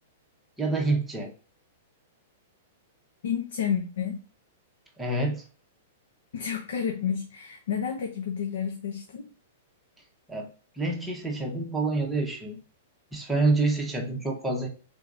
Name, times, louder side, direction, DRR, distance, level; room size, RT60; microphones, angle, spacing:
voice 1, 0.6-1.3 5.0-5.4 10.3-10.5 10.8-12.6 13.1-14.7, right 2 dB, 5° right, -1 dB, 0.8 m, -27 dB
voice 2, 3.2-4.2 6.3-9.3, left 8 dB, 80° left, 4 dB, 0.8 m, -30 dB
4.9 x 3.9 x 2.4 m, 0.39 s
supercardioid pair, 170°, 0 cm